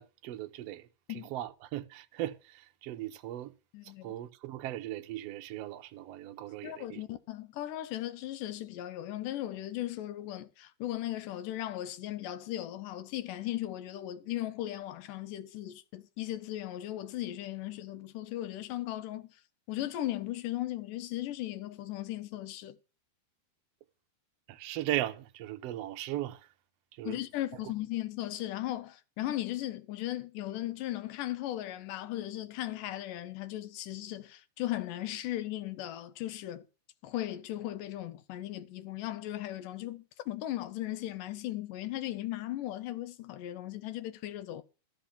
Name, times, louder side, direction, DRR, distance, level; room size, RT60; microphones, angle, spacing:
voice 1, 0.0-3.5 4.0-7.0 24.5-26.5 27.0-27.2 27.6-27.7, right 14 dB, 80° right, 1.4 m, -38 dB
voice 2, 3.7-4.1 6.6-19.3 19.7-22.8 27.1-36.6 37.0-44.6, left 14 dB, 80° left, 2.3 m, -37 dB
13.0 x 5.8 x 7.1 m
omnidirectional pair, 3.9 m